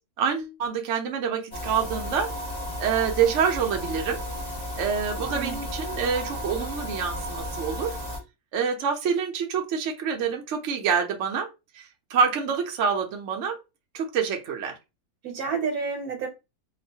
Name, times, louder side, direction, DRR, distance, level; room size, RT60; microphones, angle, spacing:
voice 1, 0.2-2.3 2.8-4.2 4.8-8.0 8.5-11.5 11.7-13.6 13.9-14.8, right 6 dB, 65° right, 0.8 m, -26 dB
sound 1, 1.5-8.2, equal, 30° left, 1.2 m, -33 dB
voice 2, 5.2-5.6 15.2-16.3, right 5 dB, 80° right, 1.3 m, -30 dB
3.9 x 2.2 x 2.7 m
omnidirectional pair, 1.6 m